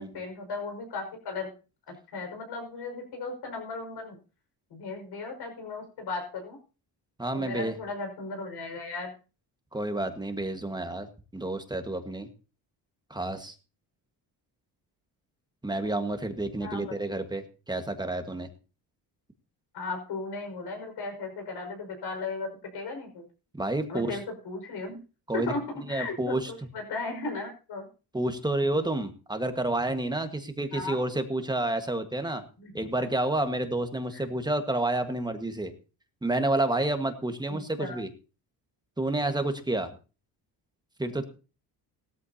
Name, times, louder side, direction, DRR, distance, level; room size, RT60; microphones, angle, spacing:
voice 1, 0.0-1.5 1.9-4.2 4.7-6.6 7.3-9.1 16.6-17.0 19.7-23.2 23.9-25.0 25.3-27.9 30.7-31.0 32.6-32.7 34.1-34.2 37.5-38.0, left 3 dB, 70° left, 4 dB, 5.4 m, -36 dB
voice 2, 7.2-7.7 9.7-11.1 11.3-12.3 13.1-13.5 15.6-18.5 23.6-24.2 25.3-25.5 25.9-26.5 28.1-32.4 32.7-35.7 36.2-38.1 39.0-39.9 41.0-41.2, right 2 dB, 10° right, 7 dB, 1.5 m, -29 dB
17.0 x 13.5 x 2.8 m, 0.33 s
cardioid pair, 110°, 41 cm